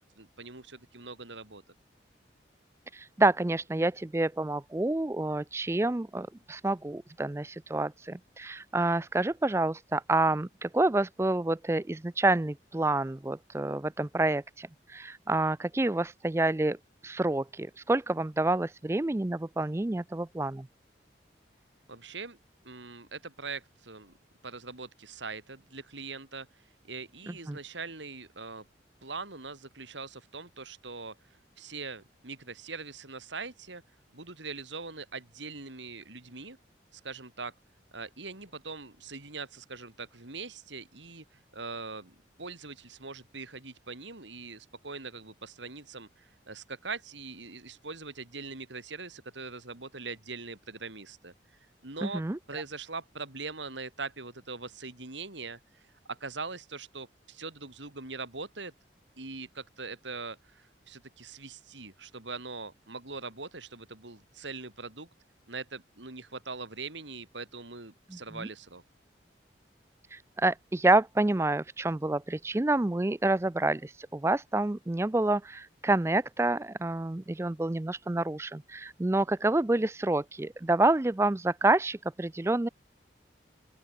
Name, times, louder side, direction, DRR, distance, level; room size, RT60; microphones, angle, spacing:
voice 1, 0.0-1.6 21.9-22.4 22.6-24.1 24.4-28.6 29.0-31.2 31.6-33.8 34.1-36.6 36.9-37.5 37.9-51.3 51.8-52.2 52.5-58.7 59.2-65.1 65.5-68.8, right 4 dB, 85° right, 4.2 m, -42 dB
voice 2, 2.9-16.8 17.0-20.7 27.3-27.6 52.0-52.6 68.1-68.5 70.1-82.7, right 2 dB, 15° right, 0.4 m, -28 dB
open air
head